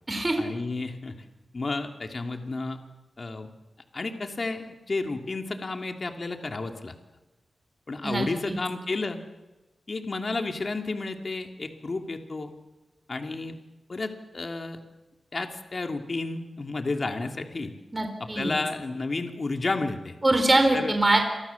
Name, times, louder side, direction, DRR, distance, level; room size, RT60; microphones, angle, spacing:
voice 1, 0.4-1.1 1.5-2.8 3.2-3.5 3.9-6.9 7.9-9.2 9.9-12.5 13.1-13.6 13.9-14.8 15.3-17.7 18.2-20.1 20.7-21.0, left 3 dB, 40° left, 4 dB, 2.8 m, -31 dB
voice 2, 8.0-8.6 17.9-18.6 20.2-21.2, right 2 dB, 20° right, 5 dB, 4.1 m, -23 dB
29.0 x 24.5 x 7.2 m, 1.1 s
wide cardioid pair, 100°, 0 cm